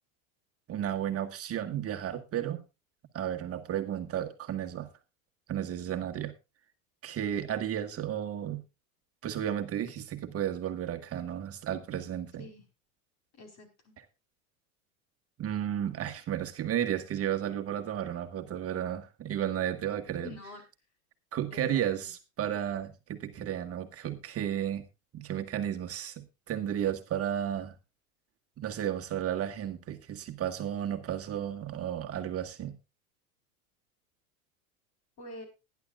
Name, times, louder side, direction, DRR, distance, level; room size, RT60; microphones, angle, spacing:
voice 1, 0.7-2.6 3.1-4.9 5.5-6.3 7.0-8.6 9.2-12.4 15.4-20.3 21.3-24.8 25.1-27.7 28.6-32.7, right 10 dB, 30° right, 6 dB, 1.8 m, -33 dB
voice 2, 13.3-13.9 20.2-20.6 21.5-22.1 35.2-35.4, left 2 dB, 40° left, 6 dB, 4.6 m, -46 dB
19.0 x 11.0 x 2.4 m, 0.26 s
hypercardioid pair, 105°, 43 cm